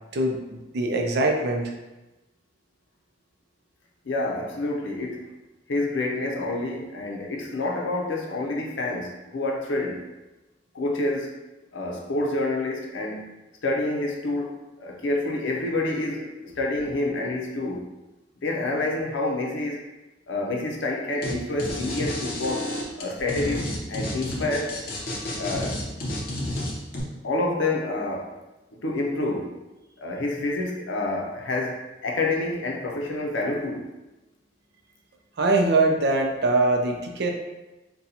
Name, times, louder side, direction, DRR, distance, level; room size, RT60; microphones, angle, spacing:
voice 1, 0.1-1.7 35.4-37.3, right 2 dB, 60° right, 3 dB, 0.4 m, -22 dB
voice 2, 4.0-5.2 5.7-10.1 10.7-11.3 11.7-13.3 13.6-17.9 18.4-19.8 20.3-24.8 25.4-25.8 27.2-28.3 28.7-29.6 30.0-33.9, left 2 dB, 85° left, 0 dB, 0.6 m, -28 dB
sound 1, 21.2-21.3 21.6-27.0, left 1 dB, 55° left, 0.8 m, -30 dB
4.1 x 2.2 x 2.7 m, 1.0 s
head